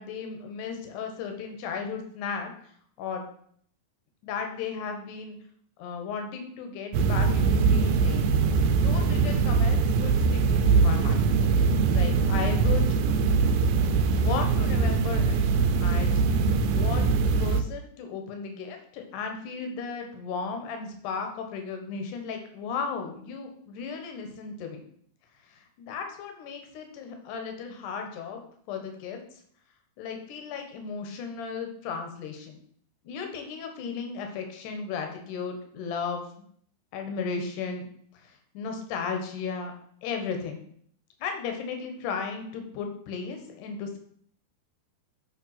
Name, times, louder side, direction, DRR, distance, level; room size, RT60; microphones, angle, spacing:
voice 1, 0.0-2.5 3.0-3.2 4.2-5.4 5.8-8.3 8.5-11.2 11.9-13.0 14.1-15.5 15.8-16.1 16.7-24.8 25.5-28.4 28.7-29.2 30.0-32.6 33.0-36.5 36.9-37.8 38.2-39.7 40.0-40.6 41.2-44.0, left 5 dB, 70° left, 4 dB, 2.2 m, -35 dB
sound 1, 6.9-17.6, right 4 dB, 80° right, 2.2 m, -22 dB
7.2 x 3.4 x 5.6 m, 0.62 s
omnidirectional pair, 4.5 m